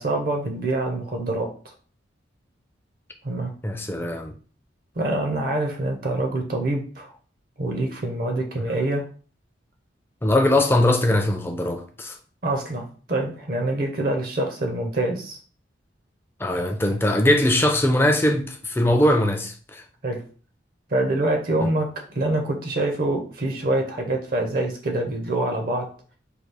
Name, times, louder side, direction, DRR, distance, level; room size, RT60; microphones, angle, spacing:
voice 1, 0.0-1.7 3.2-3.5 5.0-7.1 7.6-9.0 12.4-15.4 20.0-20.2 20.9-25.9, right 2 dB, 50° right, 0.7 m, -25 dB
voice 2, 3.6-4.3 8.6-8.7 10.2-12.2 16.4-19.8 21.6-21.7, left 1 dB, 10° left, 0.4 m, -21 dB
4.7 x 2.4 x 3.4 m
head